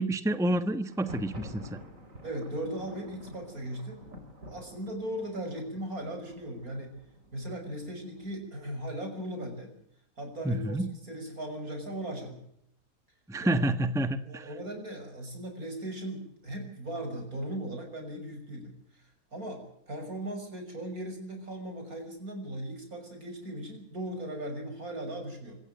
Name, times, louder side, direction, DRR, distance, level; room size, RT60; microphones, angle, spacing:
voice 1, 0.0-1.8 10.4-10.9 13.3-14.5, right 1 dB, ahead, 11 dB, 1.0 m, -29 dB
Thunder, 0.8-8.6, equal, 65° right, 4.0 m, -49 dB
voice 2, 2.2-4.1 4.5-6.9 7.3-9.7 10.2-12.4 13.4-13.6 14.3-25.6, right 1 dB, 85° right, 5 dB, 6.8 m, -38 dB
26.5 x 14.5 x 7.8 m, 0.72 s
omnidirectional pair, 1.5 m